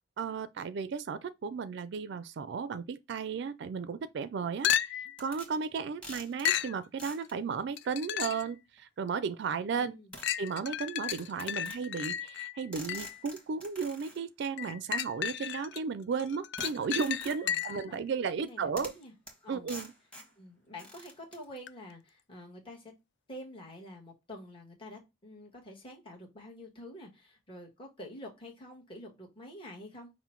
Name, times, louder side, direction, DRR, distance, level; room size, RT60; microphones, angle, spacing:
voice 1, 0.2-9.9 10.4-18.9 19.5-19.9, right 5 dB, 65° right, 0.4 m, -34 dB
sound 1, 4.6-5.2 6.4-6.8 7.8-8.5 9.1-9.2 10.2-13.2 14.6-15.8 16.2-17.9 21.7-21.8, left 10 dB, 65° left, 0.3 m, -33 dB
sound 2, 5.2-5.5 6.0-6.5 7.0-7.3 8.8-8.9 10.1-10.3 11.1-11.8 12.7-14.2 16.6-17.5 18.5-18.6 18.8-19.0 19.3-19.4 19.7-20.3 20.8-21.4, equal, 5° left, 1.2 m, -47 dB
voice 2, 9.7-10.1 17.4-18.0 18.4-19.1 19.4-19.7 20.4-22.9 23.3-30.1, left 1 dB, 30° left, 1.3 m, -48 dB
5.6 x 2.1 x 4.5 m
head